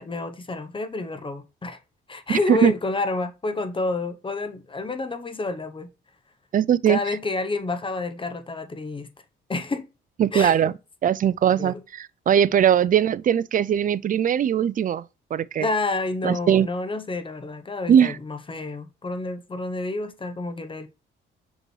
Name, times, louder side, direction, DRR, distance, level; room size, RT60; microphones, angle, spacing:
voice 1, 0.0-1.8 2.1-5.9 6.9-9.1 9.5-9.9 10.3-10.7 11.5-11.8 15.6-20.9, left 2 dB, 25° left, 0.9 m, -29 dB
voice 2, 6.5-7.0 10.2-10.7 11.0-15.0 15.3-15.7 16.2-16.7 17.9-18.2, right 9 dB, 45° right, 0.4 m, -20 dB
6.0 x 5.2 x 3.2 m
cardioid pair, 90°, 20 cm